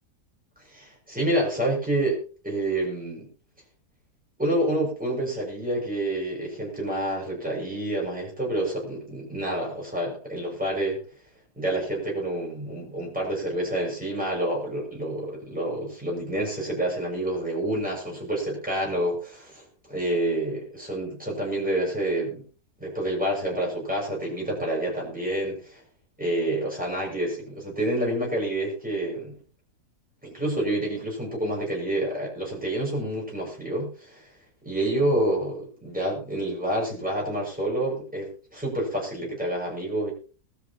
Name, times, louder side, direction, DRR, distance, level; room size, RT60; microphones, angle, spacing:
voice 1, 0.7-3.3 4.4-11.0 11.6-22.5 22.8-25.8 26.2-29.4 30.2-34.3 34.6-40.1, right 1 dB, 5° right, -3 dB, 7.1 m, -28 dB
21.5 x 13.5 x 3.1 m, 0.38 s
omnidirectional pair, 1.7 m